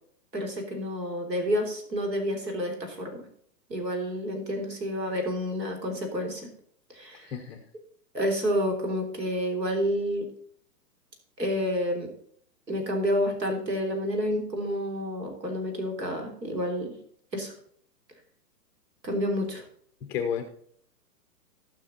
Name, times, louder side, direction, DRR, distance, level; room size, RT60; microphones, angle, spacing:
voice 1, 0.3-3.2 3.7-6.5 6.9-7.3 8.1-10.3 11.4-12.1 12.7-17.0 17.3-17.5 19.0-19.6, equal, 90° right, 4 dB, 3.6 m, -29 dB
voice 2, 7.3-7.6 20.0-20.4, left 8 dB, 5° left, 4 dB, 0.4 m, -31 dB
15.0 x 5.9 x 4.1 m, 0.63 s
hypercardioid pair, 130°, 48 cm